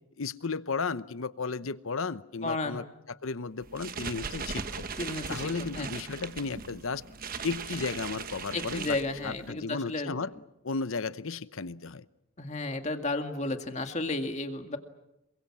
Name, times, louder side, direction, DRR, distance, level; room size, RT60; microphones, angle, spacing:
voice 1, 0.2-2.8 3.2-4.9 5.3-7.0 7.4-9.0 9.2-10.3 10.6-12.0, left 4 dB, 70° left, 15 dB, 0.9 m, -34 dB
voice 2, 2.4-2.8 5.0-5.9 8.5-10.2 12.4-14.8, left 2 dB, 30° left, 6 dB, 2.1 m, -33 dB
sound 1, 3.6-9.5, right 5 dB, 40° right, 1.2 m, -39 dB
27.5 x 23.5 x 7.4 m, 0.88 s
head